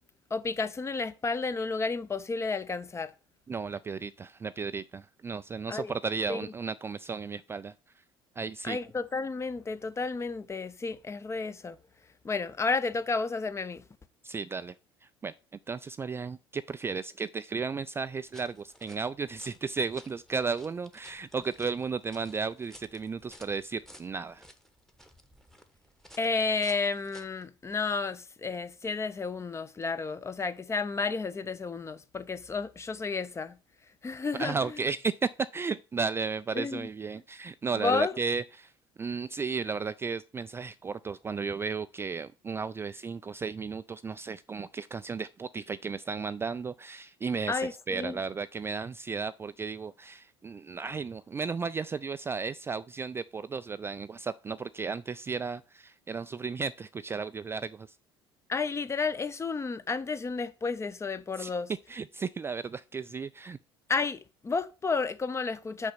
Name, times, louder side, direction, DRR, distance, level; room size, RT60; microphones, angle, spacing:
voice 1, 0.3-3.1 5.7-5.9 6.3-6.4 8.6-11.8 12.2-13.8 26.2-33.6 34.0-34.8 36.6-36.9 37.7-38.1 47.5-48.2 58.5-61.7 63.9-65.9, left 4 dB, 20° left, 0.7 m, -31 dB
voice 2, 3.5-7.7 8.4-8.8 14.2-14.7 15.2-15.3 15.7-24.4 34.4-38.7 39.0-58.0 61.4-61.5 61.9-63.6, right 5 dB, 20° right, 0.3 m, -34 dB
sound 1, 18.2-27.5, equal, 5° left, 1.1 m, -55 dB
6.5 x 5.1 x 5.7 m
figure-of-eight pair, 60°, 13 cm